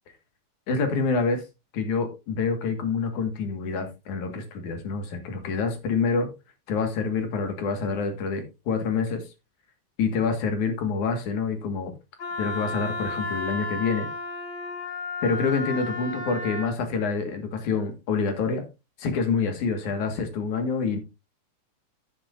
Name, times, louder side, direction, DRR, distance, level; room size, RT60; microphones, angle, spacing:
voice 1, 0.7-1.4 1.7-6.3 6.7-9.2 10.0-11.9 12.4-14.1 15.2-18.6 19.0-21.0, left 4 dB, 80° left, 6 dB, 3.2 m, -27 dB
Wind instrument woodwind instrument, 12.2-16.7, left 3 dB, 55° left, 3.3 m, -33 dB
10.5 x 10.0 x 2.6 m, 0.26 s
omnidirectional pair, 3.5 m